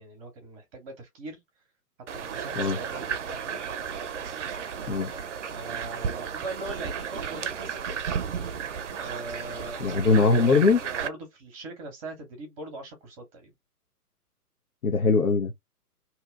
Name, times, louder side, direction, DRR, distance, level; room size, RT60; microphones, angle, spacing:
voice 1, 0.0-1.4 2.2-3.6 5.5-8.0 9.0-10.5 10.8-13.5, right 2 dB, 20° right, 0.9 m, -41 dB
sound 1, 2.1-11.1, right 7 dB, 50° right, 0.6 m, -33 dB
voice 2, 9.8-10.8 14.8-15.5, left 4 dB, 65° left, 0.8 m, -21 dB
2.9 x 2.3 x 3.7 m
figure-of-eight pair, 125°, 47 cm